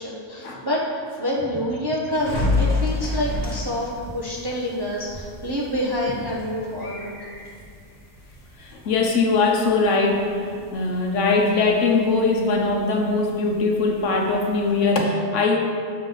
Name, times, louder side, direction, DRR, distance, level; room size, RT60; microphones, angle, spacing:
voice 1, 0.0-7.1, equal, 30° right, -4 dB, 0.4 m, -27 dB
sound 1, 2.1-14.9, left 2 dB, 50° left, 1.6 m, -32 dB
voice 2, 8.6-15.6, left 3 dB, 75° left, 2 dB, 1.1 m, -21 dB
7.2 x 4.8 x 3.8 m, 2.1 s
omnidirectional pair, 1.3 m